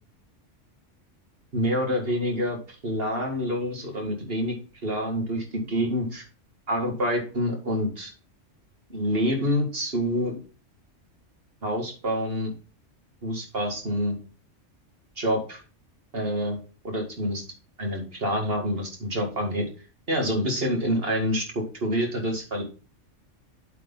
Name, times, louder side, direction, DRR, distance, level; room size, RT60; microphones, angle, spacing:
voice 1, 1.5-4.5 4.8-6.2 6.7-8.1 8.9-10.3 11.6-12.5 13.2-14.2 15.2-15.6 16.1-16.6 16.8-17.4 17.8-19.6 20.1-22.6, equal, 50° right, 2 dB, 2.4 m, -27 dB
8.1 x 4.5 x 5.5 m, 0.35 s
omnidirectional pair, 1.3 m